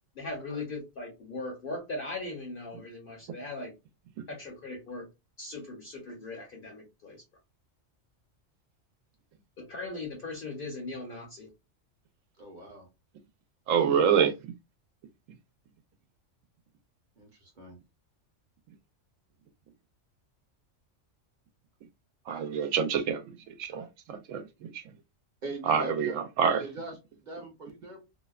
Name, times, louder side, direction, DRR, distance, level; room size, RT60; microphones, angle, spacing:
voice 1, 0.2-3.7 4.3-5.1 5.4-7.2 9.6-11.5, left 2 dB, 55° left, 0.8 m, -39 dB
voice 2, 12.4-12.9 17.2-17.8 25.4-26.1 26.6-28.0, right 1 dB, 40° right, 0.9 m, -42 dB
voice 3, 13.7-14.3 22.3-23.2 23.6-23.9 24.3-24.4 25.7-26.6, right 7 dB, 85° right, 1.0 m, -25 dB
2.7 x 2.1 x 2.3 m
omnidirectional pair, 1.3 m